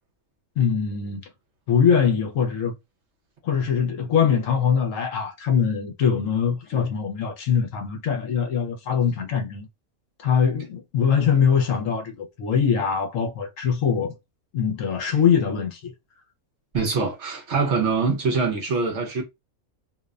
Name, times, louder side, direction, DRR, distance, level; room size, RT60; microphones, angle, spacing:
voice 1, 0.6-1.2 1.7-2.7 3.4-9.7 10.2-14.1 14.5-15.9, left 7 dB, 70° left, 0.9 m, -22 dB
voice 2, 16.7-19.2, right 4 dB, 60° right, 0.8 m, -24 dB
2.6 x 2.1 x 2.3 m
omnidirectional pair, 1.5 m